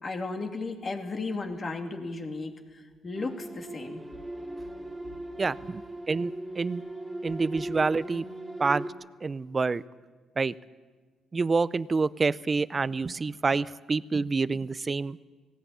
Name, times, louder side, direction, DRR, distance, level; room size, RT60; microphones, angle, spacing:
voice 1, 0.0-4.0, left 3 dB, 35° left, 4 dB, 2.6 m, -35 dB
sound 1, 3.2-8.9, right 1 dB, 10° right, 2.9 m, -39 dB
voice 2, 5.4-5.8 6.1-6.8 7.2-8.2 8.6-8.9 9.2-9.8 10.4-10.5 11.3-15.2, right 4 dB, 30° right, 18 dB, 0.5 m, -27 dB
18.5 x 17.5 x 8.7 m, 1.4 s
cardioid pair, 90°, 0 cm